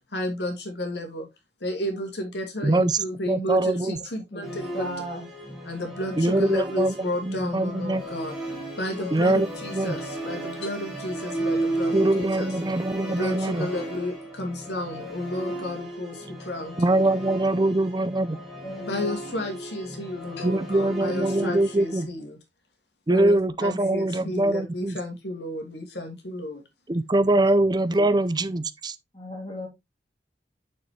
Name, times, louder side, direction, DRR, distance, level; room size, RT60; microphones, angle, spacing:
voice 1, 0.1-1.3 1.6-4.9 5.6-8.4 8.8-12.5 13.0-17.1 18.9-22.4 23.1-26.6 27.9-28.1, left 1 dB, 75° left, 2.4 m, -32 dB
voice 2, 2.6-3.0 3.3-4.0 6.2-6.9 7.2-8.0 9.1-10.0 11.9-13.7 16.8-18.4 20.4-22.1 23.1-25.0 26.9-28.9, right 2 dB, 25° right, 0.5 m, -23 dB
voice 3, 4.3-5.2 9.0-9.1 9.9-10.0 18.6-19.1 29.1-29.7, equal, 25° left, 3.2 m, -36 dB
Musical instrument, 4.4-22.0, right 1 dB, ahead, 2.4 m, -35 dB
6.7 x 6.7 x 3.2 m
head